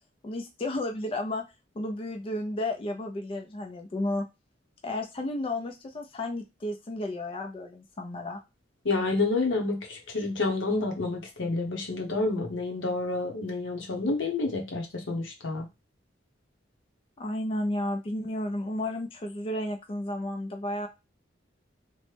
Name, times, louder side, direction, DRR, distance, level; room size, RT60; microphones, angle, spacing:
voice 1, 0.2-1.4 1.8-4.3 4.8-8.4 17.2-20.9, left 1 dB, 30° left, 3 dB, 0.4 m, -32 dB
voice 2, 8.8-15.7, left 3 dB, 80° left, 2 dB, 0.9 m, -29 dB
3.0 x 2.1 x 3.2 m, 0.24 s
head